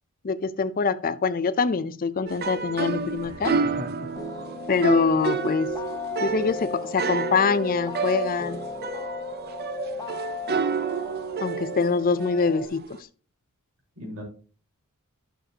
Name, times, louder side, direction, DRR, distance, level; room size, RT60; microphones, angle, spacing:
voice 1, 0.2-3.5 4.7-5.7 6.2-8.6 11.4-12.9, left 5 dB, 40° left, 15 dB, 0.5 m, -24 dB
sound 1, 2.3-13.0, right 5 dB, 45° right, 0.6 m, -30 dB
voice 2, 3.8-4.1 13.9-14.2, left 1 dB, 70° right, -1 dB, 4.8 m, -38 dB
sound 2, 4.2-12.7, left 4 dB, 15° left, 1.0 m, -36 dB
12.0 x 6.7 x 2.8 m, 0.39 s
head